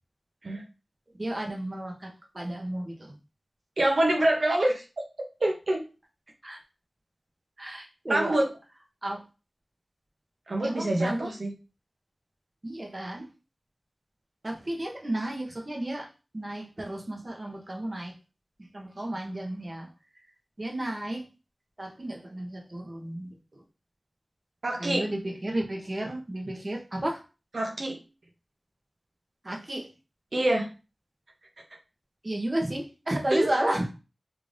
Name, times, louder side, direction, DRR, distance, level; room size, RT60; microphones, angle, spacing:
voice 1, 1.2-3.1 6.4-6.6 7.6-8.4 9.0-9.2 10.6-11.3 12.6-13.3 14.4-16.1 16.3-18.1 18.7-19.9 20.6-21.2 21.8-23.6 24.8-27.2 29.4-29.8 32.2-33.9, right 1 dB, 45° right, 1 dB, 1.0 m, -32 dB
voice 2, 3.8-4.8 5.4-5.8 8.1-8.5 10.5-11.5 24.6-25.1 27.5-28.0 30.3-30.7 33.3-33.5, right 1 dB, 75° right, 0 dB, 0.7 m, -25 dB
3.4 x 3.3 x 2.6 m, 0.31 s
wide cardioid pair, 45°, 0 cm